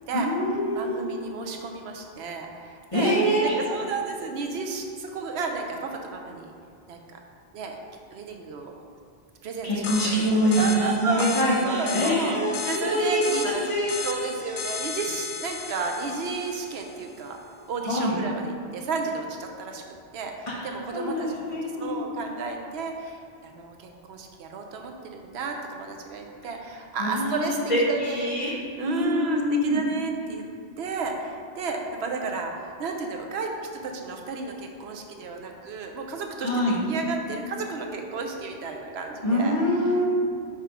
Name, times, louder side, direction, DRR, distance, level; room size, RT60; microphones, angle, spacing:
voice 1, 0.1-1.0 2.9-3.6 9.6-13.9 17.8-18.1 20.6-22.1 27.0-28.5 28.8-29.8 36.4-36.8 39.2-40.0, equal, 30° left, -7 dB, 1.4 m, -25 dB
voice 2, 0.8-3.1 3.4-6.5 6.9-7.2 7.5-7.8 8.1-8.7 9.4-17.4 17.7-19.8 20.1-21.5 21.8-28.3 28.8-30.5 30.8-36.5 36.9-39.6 39.9-40.0, right 4 dB, 85° right, 3 dB, 0.9 m, -33 dB
sound 1, 9.8-17.0, left 6 dB, 70° left, 0.7 m, -35 dB
6.0 x 3.4 x 4.8 m, 2.4 s
omnidirectional pair, 1.1 m